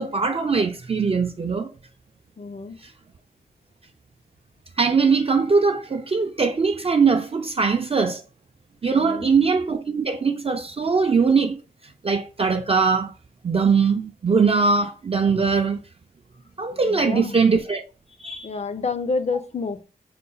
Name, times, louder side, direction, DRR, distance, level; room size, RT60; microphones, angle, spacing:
voice 1, 0.0-1.7 2.8-2.9 4.8-8.2 8.8-11.6 12.0-13.1 13.4-15.8 16.6-17.8 18.2-18.5, right 5 dB, 35° right, 0.3 m, -21 dB
voice 2, 2.4-2.8 8.9-9.3 16.8-17.4 18.4-19.8, left 4 dB, 40° left, 0.4 m, -29 dB
3.9 x 2.1 x 3.8 m
wide cardioid pair, 90°, 17 cm